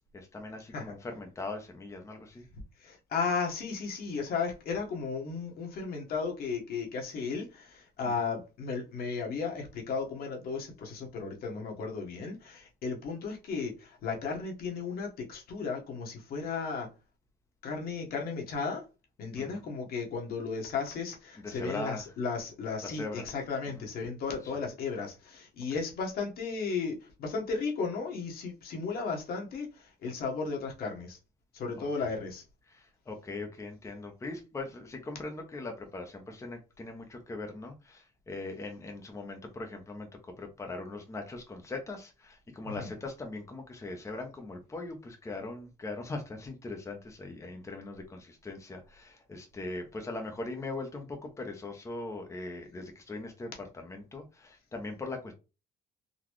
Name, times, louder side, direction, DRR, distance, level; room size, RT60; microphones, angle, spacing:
voice 1, 0.1-2.4 8.0-8.3 19.4-19.6 21.3-22.2 22.8-23.4 23.7-23.9 24.4-24.6 25.7-25.8 31.7-32.1 32.6-55.3, left 2 dB, 15° left, 0.7 m, -40 dB
voice 2, 2.5-16.9 17.6-18.8 19.2-31.2 31.5-32.4 42.7-42.9, left 5 dB, 65° left, 1.3 m, -35 dB
4.0 x 2.3 x 3.0 m
cardioid pair, 110°, 17 cm